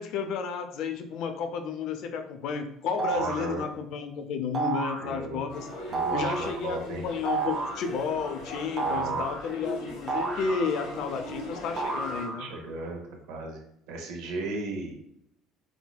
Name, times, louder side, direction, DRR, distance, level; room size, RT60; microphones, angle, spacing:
voice 1, 0.0-5.7 6.1-12.5, left 6 dB, 60° left, 7 dB, 0.4 m, -32 dB
sound 1, 3.0-3.5 4.5-5.1 5.9-6.5 7.3-7.9 8.8-9.5 10.1-11.0 11.8-12.6, right 4 dB, 25° right, 0.5 m, -31 dB
voice 2, 3.1-3.6 5.0-5.5 5.9-7.0 8.8-9.2 12.4-13.0 13.3-13.6 13.9-14.9, right 2 dB, 80° right, 1 dB, 0.7 m, -35 dB
sound 2, 5.5-12.2, left 1 dB, 90° left, 0.9 m, -40 dB
4.3 x 2.0 x 2.2 m, 0.74 s
cardioid pair, 145°, 0 cm